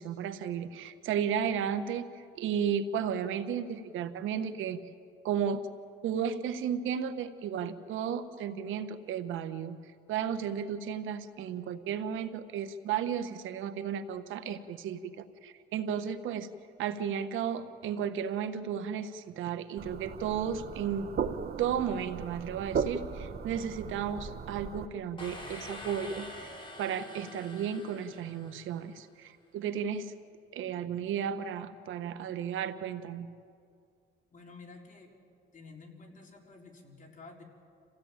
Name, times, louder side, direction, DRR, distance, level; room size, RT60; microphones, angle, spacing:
voice 1, 0.0-4.8 5.2-5.6 6.0-9.8 10.1-16.5 16.8-21.1 21.6-30.1 30.5-33.3, right 8 dB, 85° right, 10 dB, 1.2 m, -34 dB
sound 1, 19.8-24.9, right 6 dB, 55° right, 1.3 m, -37 dB
sound 2, 25.2-28.9, left 1 dB, 25° left, 5.4 m, -46 dB
voice 2, 34.3-35.1 35.5-37.4, left 3 dB, 40° left, 0 dB, 4.2 m, -51 dB
28.0 x 16.0 x 8.9 m, 2.3 s
cardioid pair, 90°, 20 cm